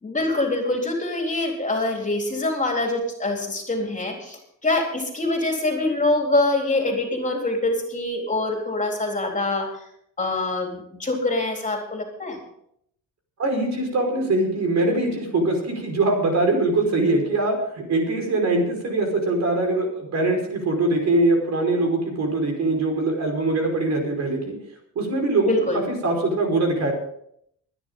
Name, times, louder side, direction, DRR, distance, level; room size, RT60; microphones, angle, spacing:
voice 1, 0.0-9.7 10.2-12.4 25.4-25.8, left 2 dB, 25° left, 1 dB, 3.9 m, -24 dB
voice 2, 13.4-24.6 25.0-25.5 26.0-26.9, right 2 dB, 55° right, 2 dB, 5.2 m, -22 dB
22.5 x 10.0 x 3.9 m, 0.71 s
cardioid pair, 100°, 33 cm